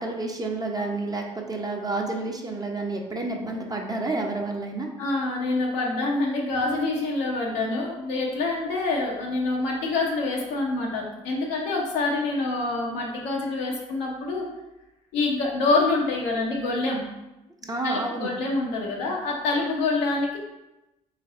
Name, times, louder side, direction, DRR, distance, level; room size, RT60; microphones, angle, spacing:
voice 1, 0.0-4.9 17.7-18.3, right 2 dB, 20° right, 1 dB, 0.9 m, -30 dB
voice 2, 5.0-14.4 15.1-17.0 17.6-20.4, left 3 dB, 75° left, -2 dB, 1.0 m, -26 dB
3.8 x 3.3 x 3.8 m, 0.96 s
hypercardioid pair, 50°, 18 cm